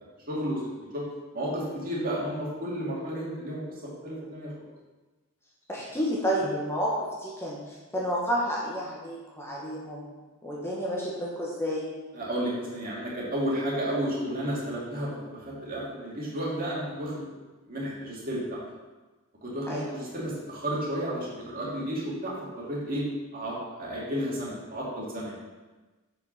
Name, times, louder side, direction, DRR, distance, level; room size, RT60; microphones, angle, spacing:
voice 1, 0.3-0.6 0.9-1.0 1.3-4.7 6.4-6.5 12.1-17.3 17.6-18.6 19.4-23.1 23.3-25.4, equal, 40° right, -6 dB, 2.5 m, -32 dB
voice 2, 5.7-10.0 10.4-11.9 19.7-19.8, equal, 10° left, -4 dB, 1.2 m, -30 dB
7.5 x 5.3 x 5.6 m, 1.2 s
head